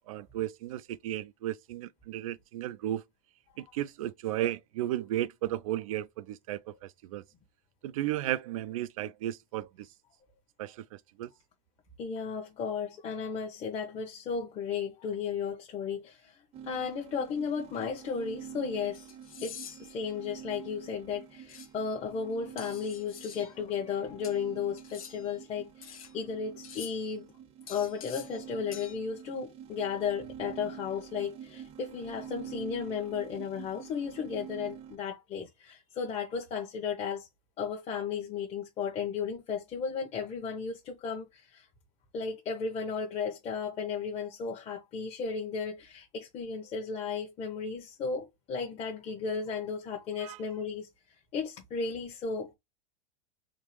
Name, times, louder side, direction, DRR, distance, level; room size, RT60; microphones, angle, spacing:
voice 1, 0.1-3.0 3.6-7.2 7.8-9.9 10.6-10.8 11.2-11.3 50.2-50.4, right 13 dB, 75° right, 0.4 m, -34 dB
voice 2, 12.0-19.1 19.4-27.3 27.7-37.3 37.6-41.7 42.1-52.5, left 6 dB, 35° left, 1.0 m, -35 dB
sound 1, 16.5-35.0, right 9 dB, 35° right, 0.7 m, -47 dB
sound 2, 17.7-17.8 18.9-20.0 21.5-21.7 22.6-23.5 24.2-25.4 25.8-26.1 26.6-27.1 27.7-28.4 28.7-29.0, left 8 dB, 85° left, 0.9 m, -47 dB
3.6 x 2.4 x 3.1 m
hypercardioid pair, 110°, 18 cm